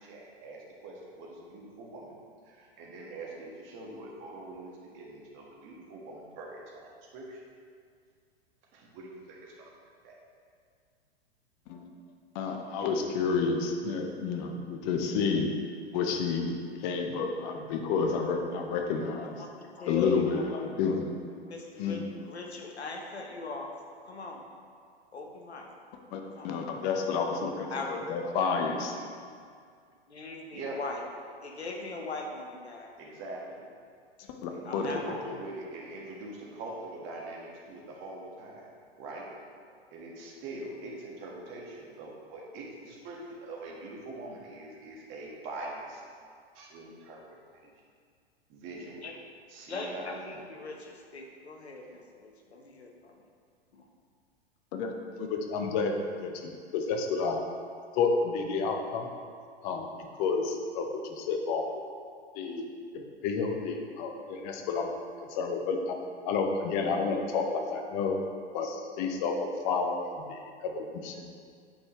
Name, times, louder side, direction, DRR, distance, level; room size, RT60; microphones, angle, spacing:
voice 1, 0.0-2.1 2.4-7.4 8.7-9.7 10.0-10.1 30.5-30.8 33.0-33.6 34.5-38.7 39.0-39.3 39.9-46.0 46.5-47.2 48.5-49.1 49.5-50.4, right 2 dB, 40° right, -2 dB, 1.6 m, -43 dB
voice 2, 12.3-15.5 15.9-19.4 19.9-21.1 21.8-22.0 26.1-29.0 34.4-34.9 35.2-35.4 54.7-54.9 55.2-55.9 56.2-57.4 57.9-59.1 59.6-59.9 60.1-61.8 62.3-62.6 62.9-64.9 65.3-65.9 66.2-68.2 68.5-69.3 69.6-71.5, left 5 dB, 45° left, 3 dB, 0.9 m, -30 dB
voice 3, 19.2-21.0 21.5-23.7 24.0-24.4 25.1-25.7 26.3-26.5 27.7-28.4 28.9-29.4 30.1-31.0 31.4-32.9 34.6-35.2 49.0-49.2 49.7-53.2 53.7-53.9, left 3 dB, 85° left, 1 dB, 1.1 m, -40 dB
8.8 x 5.5 x 3.1 m, 2.1 s
figure-of-eight pair, 100°, 32 cm